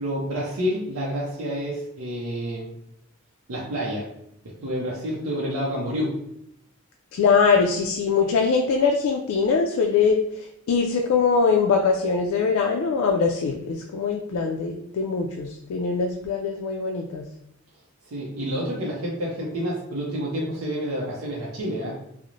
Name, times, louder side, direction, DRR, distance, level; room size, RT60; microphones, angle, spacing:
voice 1, 0.0-2.7 3.5-4.1 4.6-6.1 18.1-21.9, equal, 90° right, -5 dB, 0.5 m, -28 dB
voice 2, 7.1-10.2 10.7-17.3, left 5 dB, 90° left, 3 dB, 0.3 m, -22 dB
2.9 x 2.0 x 2.5 m, 0.75 s
head